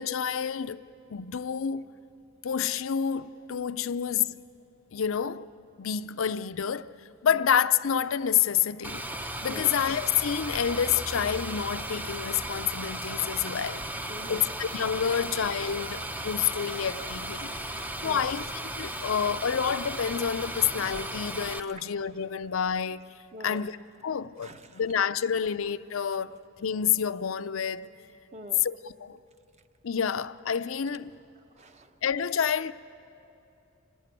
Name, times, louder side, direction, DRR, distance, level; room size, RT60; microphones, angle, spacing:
voice 1, 0.0-1.8 2.4-4.4 4.9-5.5 5.8-6.9 7.2-17.6 18.0-18.5 18.8-23.1 23.4-23.8 24.0-27.9 28.6-29.2 29.8-31.2 32.0-32.7, left 8 dB, 80° left, 0.5 m, -28 dB
sound 1, 8.8-21.6, right 1 dB, 10° right, 0.7 m, -36 dB
voice 2, 13.4-14.5 15.1-15.2 16.7-16.8 17.5-18.3 23.3-23.6 24.4-24.8 28.3-28.6 31.6-31.9, right 1 dB, 35° right, 1.0 m, -46 dB
26.5 x 17.5 x 9.1 m
head